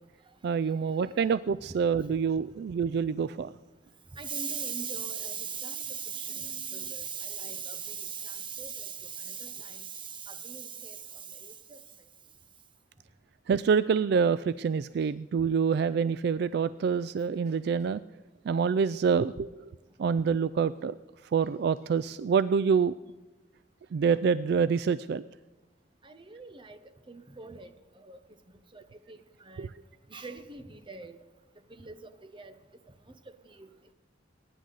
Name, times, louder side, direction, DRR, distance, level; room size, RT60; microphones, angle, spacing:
voice 1, 0.4-3.5 13.5-18.0 18.4-19.7 20.0-20.9 21.3-23.0 23.9-25.2 29.6-29.7, right 6 dB, 60° right, 16 dB, 0.3 m, -26 dB
voice 2, 4.2-9.8 10.3-11.0 26.0-26.8 27.1-27.7 28.1-28.2 28.7-28.8 29.1-29.2 29.5-29.7 30.1-31.2 31.8-31.9 32.3-32.5 33.6-33.7, right 6 dB, 25° right, 9 dB, 0.9 m, -38 dB
21.5 x 9.9 x 4.0 m, 1.1 s
head